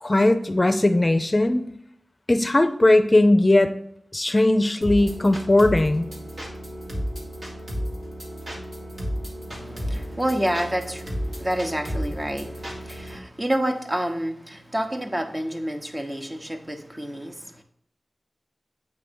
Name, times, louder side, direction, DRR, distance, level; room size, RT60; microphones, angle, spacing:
voice 1, 0.0-1.6 2.3-3.7 4.1-6.1, left 1 dB, 35° left, 7 dB, 0.5 m, -19 dB
sound 1, 4.8-13.1, equal, 70° right, 2.1 m, -33 dB
voice 2, 9.5-17.6, right 1 dB, 25° right, 4 dB, 1.1 m, -29 dB
8.1 x 3.2 x 5.3 m, 0.71 s
cardioid pair, 40°, 0 cm